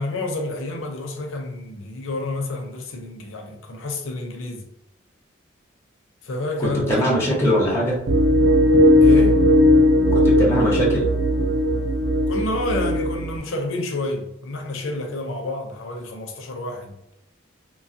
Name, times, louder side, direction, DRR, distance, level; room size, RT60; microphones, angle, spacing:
voice 1, 0.0-4.7 6.2-7.1 9.0-9.4 12.3-16.9, left 2 dB, 90° left, 0.6 m, -29 dB
voice 2, 6.6-8.0 10.1-11.0, equal, 15° left, 0.8 m, -21 dB
sound 1, 8.1-13.4, left 1 dB, 70° right, 0.5 m, -17 dB
3.0 x 2.3 x 2.6 m
head